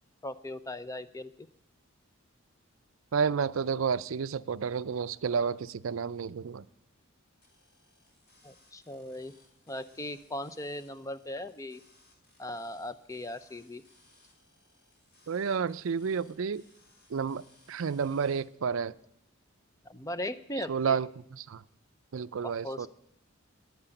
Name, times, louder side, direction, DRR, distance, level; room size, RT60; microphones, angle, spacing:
voice 1, 0.2-1.3 8.4-9.3 9.7-11.8 12.4-13.8 19.8-21.0 22.4-22.9, left 1 dB, 15° left, 0.6 m, -38 dB
voice 2, 3.1-6.7 15.3-16.6 17.1-18.9 20.6-21.6 22.1-22.9, right 6 dB, 70° right, 0.4 m, -31 dB
sound 1, 7.4-18.4, left 2 dB, 50° left, 3.5 m, -64 dB
11.0 x 9.8 x 9.0 m
head